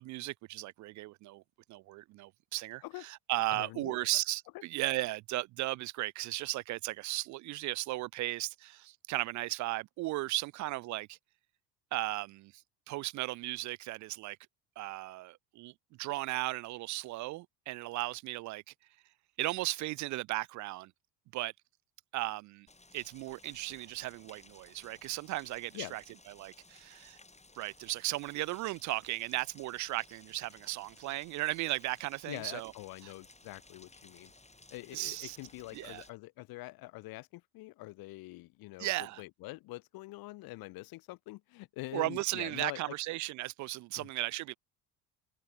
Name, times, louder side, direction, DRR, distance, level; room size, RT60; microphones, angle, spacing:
voice 1, 0.0-1.4 1.7-11.2 11.9-12.5 12.9-14.4 14.8-15.7 16.0-18.6 19.4-20.9 21.3-21.5 22.1-22.7 22.9-26.0 26.4-27.2 27.6-32.7 34.9-35.4 35.7-36.0 38.8-39.2 41.9-44.5, right 18 dB, 40° right, 0.4 m, -36 dB
voice 2, 3.5-4.0 25.7-26.0 32.3-34.3 34.7-42.9 44.0-44.1, left 20 dB, 45° left, 0.7 m, -45 dB
Rain, 22.7-36.1, left 2 dB, 15° left, 5.0 m, -59 dB
figure-of-eight pair, 60°, 50 cm